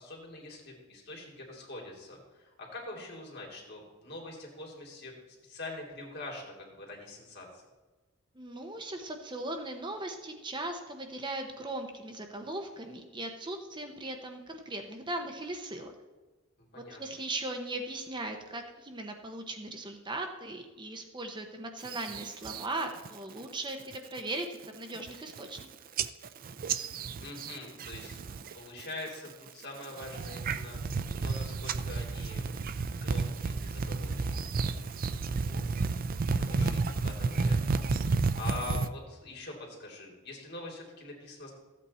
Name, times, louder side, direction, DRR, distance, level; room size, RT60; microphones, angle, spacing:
voice 1, 0.0-5.1 5.4-7.6 16.6-17.2 26.9-28.2 28.5-34.4 34.7-41.5, left 2 dB, 55° left, -1 dB, 2.9 m, -45 dB
voice 2, 8.3-15.9 16.7-25.7, right 2 dB, 20° right, 5 dB, 0.9 m, -38 dB
sound 1, 21.8-22.6 23.0-23.4 23.8-24.2 24.6-24.7 24.9-25.6 26.0-28.5 28.8-29.3 29.8-38.9, right 4 dB, 45° right, 0.4 m, -32 dB
14.0 x 8.4 x 4.3 m, 1.3 s
head